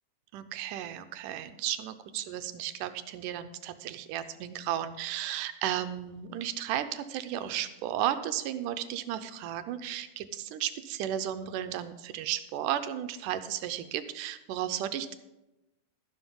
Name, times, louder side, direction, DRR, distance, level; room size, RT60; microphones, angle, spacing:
voice 1, 0.3-15.2, right 11 dB, 85° right, 10 dB, 2.2 m, -34 dB
12.5 x 11.5 x 3.7 m, 0.97 s
omnidirectional pair, 3.8 m